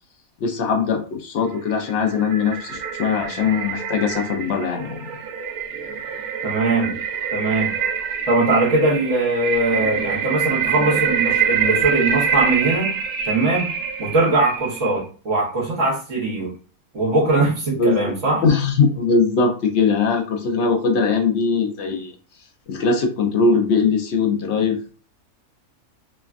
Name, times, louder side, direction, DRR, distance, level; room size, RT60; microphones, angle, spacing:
voice 1, 0.4-5.0 17.8-18.1 18.4-22.1 22.7-25.0, left 4 dB, 60° left, 3 dB, 0.8 m, -20 dB
sound 1, 1.6-15.0, right 7 dB, 85° right, 1.0 m, -25 dB
voice 2, 6.4-7.0 7.3-7.7 8.3-12.9 13.3-13.7 14.0-16.5 16.9-18.4, right 2 dB, 60° right, -4 dB, 1.4 m, -21 dB
3.2 x 2.2 x 2.4 m, 0.38 s
omnidirectional pair, 1.5 m